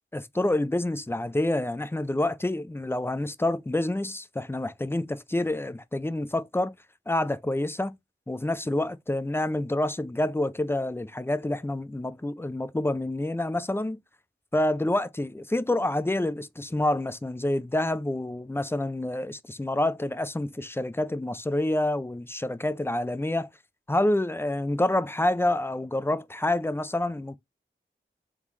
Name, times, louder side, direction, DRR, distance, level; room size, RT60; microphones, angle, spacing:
voice 1, 0.1-6.7 7.1-8.0 8.3-14.0 14.5-23.5 23.9-27.4, left 1 dB, 10° left, 0.4 m, -28 dB
3.7 x 3.6 x 3.0 m
wide cardioid pair, 45°, 21 cm